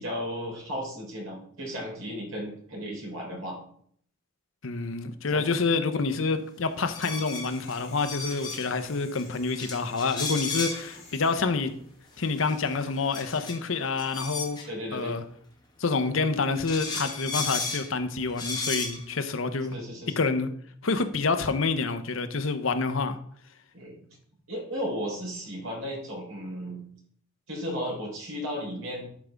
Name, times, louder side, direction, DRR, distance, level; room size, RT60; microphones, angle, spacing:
voice 1, 0.0-3.6 5.3-5.4 14.7-15.2 19.7-20.2 23.7-23.9 24.5-26.8 27.5-29.1, equal, 85° right, 3.8 m, -34 dB
voice 2, 4.6-11.8 12.2-14.6 14.9-15.2 15.8-19.8 20.2-20.5 20.8-23.2, left 4 dB, 75° left, 0.8 m, -27 dB
sound 1, 6.7-12.7, left 4 dB, 40° left, 3.8 m, -53 dB
sound 2, 6.8-8.7 9.1-9.2 9.6-10.9 12.2-14.7 16.2-16.3 16.7-17.9 18.3-19.0, left 3 dB, 20° left, 1.4 m, -34 dB
12.0 x 5.1 x 3.4 m
head